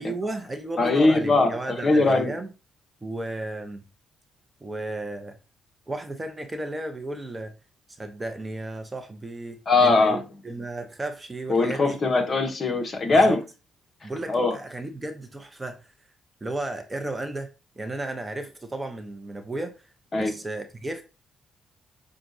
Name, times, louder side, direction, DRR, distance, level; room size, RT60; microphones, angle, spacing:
voice 1, 0.0-2.5 3.0-3.8 4.6-5.4 5.9-7.5 8.0-12.0 13.1-13.4 14.0-15.9 16.4-17.5 17.8-19.8 20.2-21.0, right 2 dB, 20° right, 0.7 m, -34 dB
voice 2, 0.8-1.5 1.8-2.3 9.7-10.2 11.5-13.4 14.3-14.5 20.1-20.3, left 3 dB, 40° left, 1.1 m, -20 dB
5.9 x 2.4 x 2.7 m
cardioid pair, 90°, 0 cm